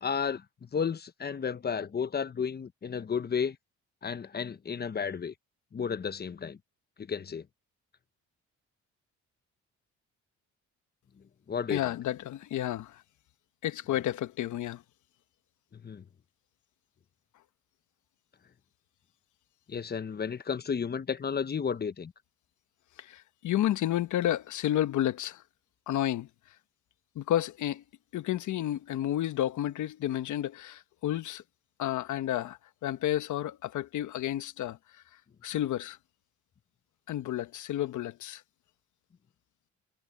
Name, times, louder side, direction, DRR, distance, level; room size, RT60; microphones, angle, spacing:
voice 1, 0.0-3.6 4.0-5.3 5.7-6.6 7.0-7.5 11.5-11.9 15.7-16.0 19.7-22.1, left 6 dB, 35° left, 1.1 m, -33 dB
voice 2, 11.7-13.0 13.6-14.8 23.0-25.4 25.9-26.3 27.1-27.8 28.1-31.4 31.8-34.8 35.4-36.0 37.1-38.4, left 12 dB, 75° left, 1.2 m, -31 dB
cardioid pair, 90°, 30 cm